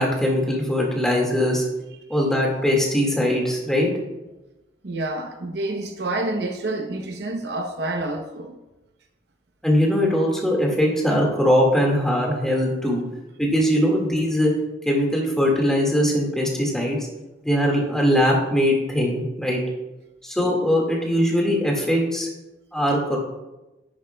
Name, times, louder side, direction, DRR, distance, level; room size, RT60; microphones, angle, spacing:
voice 1, 0.0-1.6 2.1-3.9 9.6-13.0 13.4-14.5 14.9-17.0 17.4-19.6 20.2-22.3 22.7-23.2, equal, 5° left, 1.8 m, -21 dB
voice 2, 4.8-8.6, right 2 dB, 60° right, 0.8 m, -28 dB
10.5 x 10.0 x 2.2 m
head